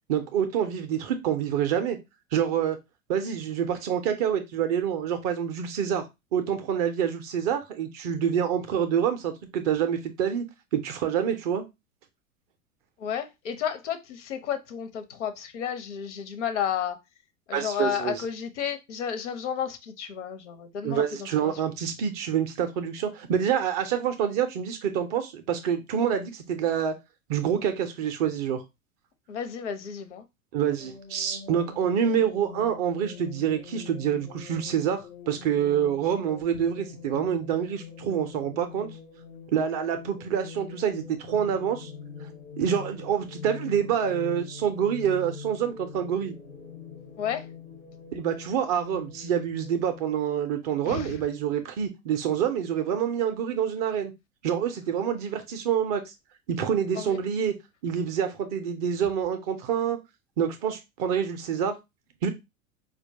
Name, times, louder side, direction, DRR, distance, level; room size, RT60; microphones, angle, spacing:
voice 1, 0.1-2.0 2.3-2.8 3.1-6.0 6.3-10.4 10.7-11.7 17.5-18.2 20.8-26.9 27.3-28.6 30.5-38.9 39.5-41.9 42.2-42.3 42.6-46.3 48.1-54.1 54.4-56.0 56.5-57.5 57.8-60.0 60.4-61.8 62.2-62.3, right 8 dB, 30° right, 0.4 m, -27 dB
voice 2, 13.0-17.0 17.5-21.6 29.3-30.2 47.2-47.5 50.9-51.2 56.9-57.2, left 8 dB, 60° left, 0.7 m, -32 dB
sound 1, 30.8-50.0, left 6 dB, 85° left, 1.1 m, -44 dB
4.3 x 2.2 x 2.6 m
figure-of-eight pair, 85°, 41 cm